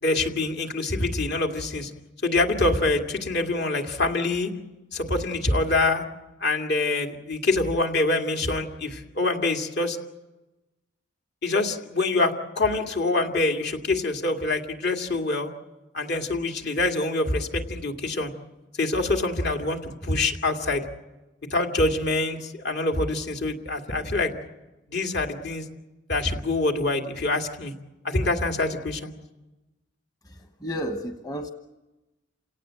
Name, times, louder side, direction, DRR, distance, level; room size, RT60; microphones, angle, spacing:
voice 1, 0.0-1.9 2.2-4.5 4.9-6.0 6.4-10.0 11.4-15.5 15.9-18.3 18.8-20.9 21.5-24.3 24.9-25.7 26.1-27.7 28.0-29.1, left 2 dB, 60° left, 3 dB, 2.3 m, -25 dB
voice 2, 30.2-31.5, equal, 20° left, 5 dB, 1.1 m, -32 dB
28.5 x 18.0 x 7.7 m, 1.1 s
head